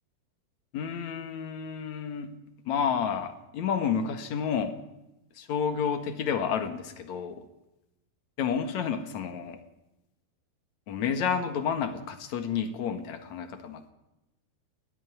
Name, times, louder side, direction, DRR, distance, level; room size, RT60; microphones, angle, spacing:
voice 1, 0.7-2.3 2.7-4.8 5.4-7.4 8.4-9.6 10.9-13.9, left 7 dB, 55° left, 8 dB, 2.4 m, -30 dB
19.5 x 15.0 x 9.6 m, 0.93 s
omnidirectional pair, 4.9 m